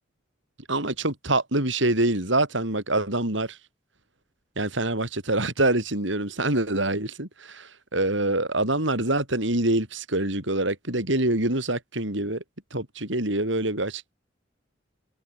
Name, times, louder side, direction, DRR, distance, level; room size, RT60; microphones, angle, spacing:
voice 1, 0.7-3.6 4.6-12.4 12.7-14.1, right 2 dB, 70° right, 6.1 m, -25 dB
head